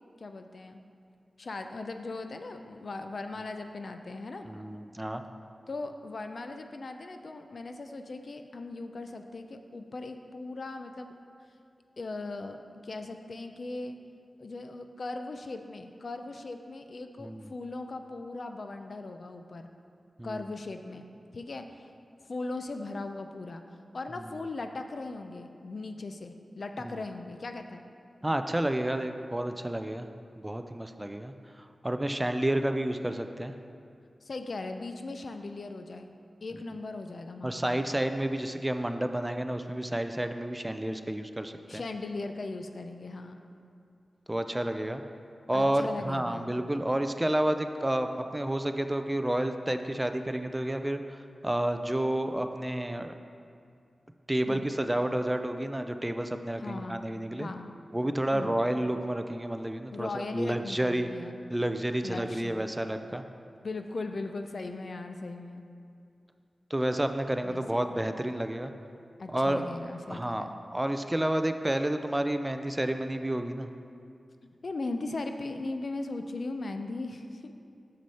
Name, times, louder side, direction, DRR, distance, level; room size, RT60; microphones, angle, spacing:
voice 1, 0.2-0.8 1.4-4.5 5.7-11.2 12.0-14.0 14.4-19.7 20.2-21.1 21.3-21.7 22.3-23.6 23.9-27.8 34.2-36.1 36.4-37.8 41.7-43.4 45.5-46.6 54.5-54.7 56.6-57.0 57.4-57.7 58.3-58.6 59.9-61.4 62.0-62.5 63.6-65.7 67.4-67.9 69.2-70.6 74.6-77.5, left 3 dB, 60° left, 6 dB, 0.4 m, -38 dB
voice 2, 4.5-5.2 17.2-17.5 20.2-20.4 24.2-24.3 26.8-27.0 28.2-30.1 30.4-33.5 37.4-41.8 44.3-45.0 45.5-53.1 54.3-57.5 57.9-61.1 61.5-63.2 66.7-68.7 69.3-69.6 70.1-70.5 70.7-73.7, right 1 dB, 15° right, 7 dB, 0.3 m, -30 dB
6.9 x 6.2 x 4.2 m, 2.4 s
wide cardioid pair, 95°, 0 cm